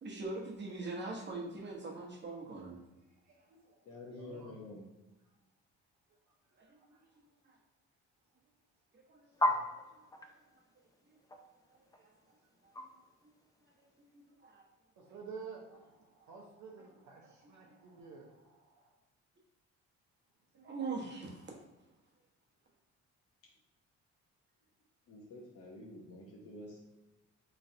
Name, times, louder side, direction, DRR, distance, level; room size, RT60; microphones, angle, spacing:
voice 1, 0.0-2.8 6.6-6.7 6.9-7.0 7.4-7.6 8.9-9.3 9.9-10.0 12.6-12.7 14.1-14.6 20.6-21.5, right 3 dB, 35° right, 0 dB, 0.9 m, -42 dB
voice 2, 3.0-4.7 6.6-7.1 9.0-9.1 9.4-9.6 11.9-12.0 15.0-19.0 20.5-20.8, right 5 dB, 70° right, -1 dB, 0.7 m, -52 dB
voice 3, 3.9-4.8 25.1-26.8, left 2 dB, 50° left, -2 dB, 0.7 m, -49 dB
sound 1, 9.3-14.0, left 1 dB, 10° left, 0.3 m, -36 dB
3.8 x 3.1 x 2.7 m, 1.0 s
cardioid pair, 90°, 30 cm